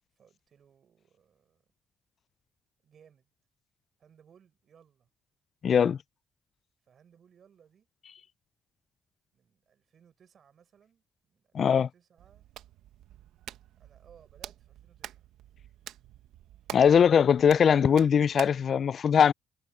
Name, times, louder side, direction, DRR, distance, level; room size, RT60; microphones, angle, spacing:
voice 1, 0.2-1.6 2.8-3.3 4.0-5.1 6.9-7.9 9.3-12.5 13.7-15.3, right 8 dB, 55° right, 7.2 m, -61 dB
voice 2, 5.6-6.0 11.5-11.9 16.7-19.3, left 7 dB, 55° left, 0.3 m, -21 dB
Hands, 12.2-18.7, right 12 dB, 85° right, 1.0 m, -47 dB
cardioid pair, 90°, 0 cm